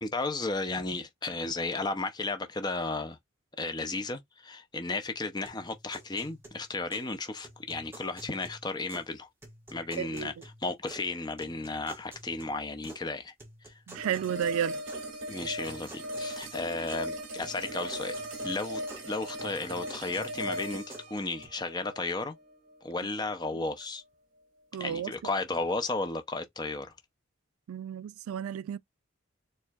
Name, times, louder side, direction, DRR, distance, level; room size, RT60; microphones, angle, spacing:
voice 1, 0.0-3.2 3.6-9.3 9.7-10.3 10.6-13.3 13.6-13.7 15.3-18.2 18.4-22.4 22.8-24.0 24.8-26.9, left 3 dB, 20° left, 0.5 m, -34 dB
sound 1, 5.5-7.1 7.4-9.1 9.4-11.1 11.4-13.0 13.4-15.0 15.4-17.1 17.4-19.1 19.4-21.5, right 1 dB, 10° right, 1.3 m, -51 dB
voice 2, 10.0-10.3 13.9-14.8 24.7-25.1 27.7-28.8, right 9 dB, 85° right, 0.3 m, -32 dB
sound 2, 14.0-23.0, equal, 65° right, 1.6 m, -38 dB
4.4 x 3.1 x 2.4 m
head